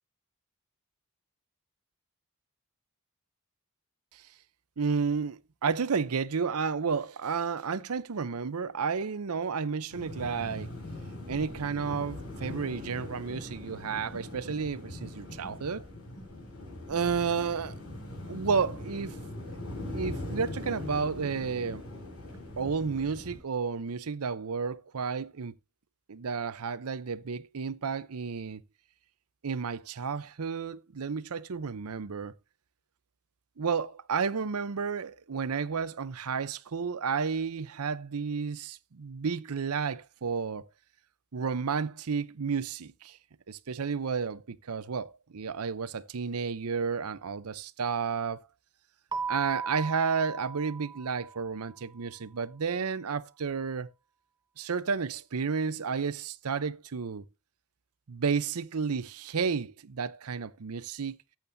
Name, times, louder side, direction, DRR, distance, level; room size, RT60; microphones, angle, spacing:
voice 1, 4.8-10.7 11.3-15.8 16.9-17.8 18.3-19.2 19.9-21.8 22.6-25.6 26.1-28.6 29.4-32.3 33.6-40.6 41.3-43.2 43.5-48.4 49.3-53.9 54.6-57.2 58.1-61.1, right 5 dB, 75° right, 0.7 m, -32 dB
sound 1, 9.9-23.4, left 1 dB, 85° left, 5.8 m, -41 dB
Keyboard (musical), 49.1-51.7, right 5 dB, 20° right, 0.9 m, -37 dB
14.0 x 8.8 x 2.7 m
head